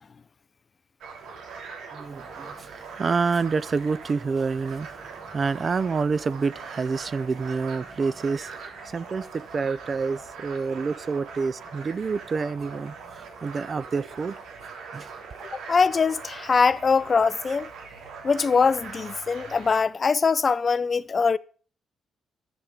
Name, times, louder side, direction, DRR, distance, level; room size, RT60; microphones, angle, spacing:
sound 1, 1.0-19.8, right 5 dB, 80° right, 3.2 m, -42 dB
voice 1, 1.9-4.9 5.3-14.3 14.9-15.1, right 4 dB, 35° right, 0.5 m, -28 dB
voice 2, 15.7-17.7 18.2-21.4, left 5 dB, 30° left, 0.5 m, -22 dB
13.5 x 5.2 x 7.3 m
cardioid pair, 125°, 0 cm